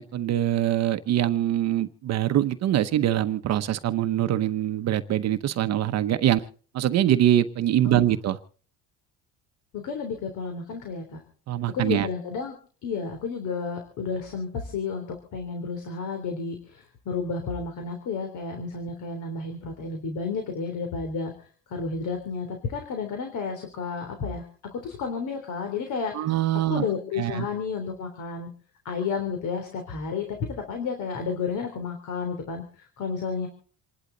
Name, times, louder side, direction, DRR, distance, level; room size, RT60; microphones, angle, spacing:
voice 1, 0.0-6.4 6.7-8.4 11.5-12.1 26.1-26.8 27.2-27.5, right 12 dB, 45° right, 11 dB, 0.9 m, -23 dB
voice 2, 9.7-11.2 11.7-12.5 12.8-15.0 15.3-21.3 21.7-24.4 24.7-26.4 26.7-28.5 28.9-33.5, left 5 dB, 55° left, 5 dB, 3.5 m, -31 dB
28.0 x 11.5 x 4.0 m, 0.42 s
cardioid pair, 150°, 36 cm